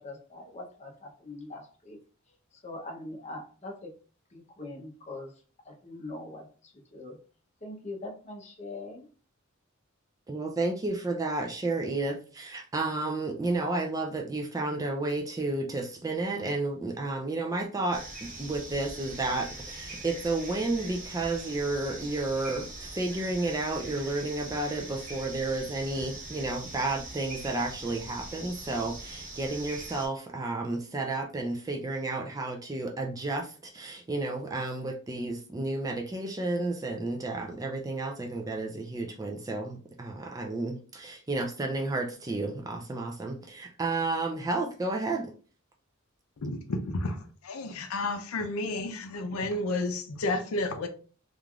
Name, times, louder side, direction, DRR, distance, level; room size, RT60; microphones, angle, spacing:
voice 1, 0.0-2.0 2.5-3.9 4.3-7.2 7.6-9.1, left 2 dB, 30° left, 0.7 m, -42 dB
voice 2, 10.3-45.3, right 2 dB, 15° right, 0.3 m, -32 dB
sound 1, 17.9-30.1, right 2 dB, 40° right, 0.7 m, -42 dB
voice 3, 46.4-47.2 47.4-50.9, left 2 dB, 85° left, 0.5 m, -31 dB
3.2 x 2.4 x 2.3 m
head